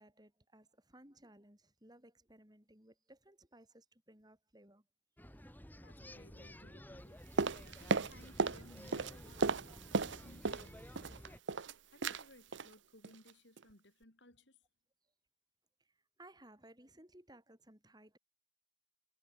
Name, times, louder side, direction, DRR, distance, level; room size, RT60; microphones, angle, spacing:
voice 1, 0.0-4.8 9.7-9.8 15.8-15.9 16.2-18.2, right 1 dB, 20° right, 4.8 m, -60 dB
sound 1, 5.2-11.4, equal, 10° left, 5.1 m, -53 dB
voice 2, 5.8-7.3 7.5-14.6, left 1 dB, 60° left, 7.9 m, -62 dB
sound 2, 7.4-8.6 8.9-10.7 11.0-11.7 12.0-12.2 12.5-12.7 13.0-13.3 13.6-13.7, right 4 dB, 65° right, 0.8 m, -35 dB
head